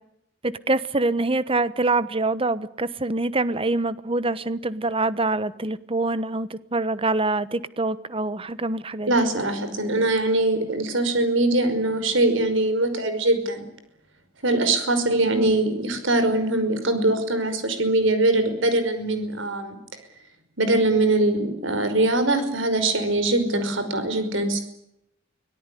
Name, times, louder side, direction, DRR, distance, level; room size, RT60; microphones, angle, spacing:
voice 1, 0.4-9.1 15.2-15.6, right 2 dB, 25° right, 16 dB, 1.1 m, -25 dB
voice 2, 9.1-13.7 14.4-19.8 20.6-24.6, right 2 dB, 70° right, 9 dB, 5.4 m, -22 dB
25.0 x 18.0 x 10.0 m, 0.78 s
head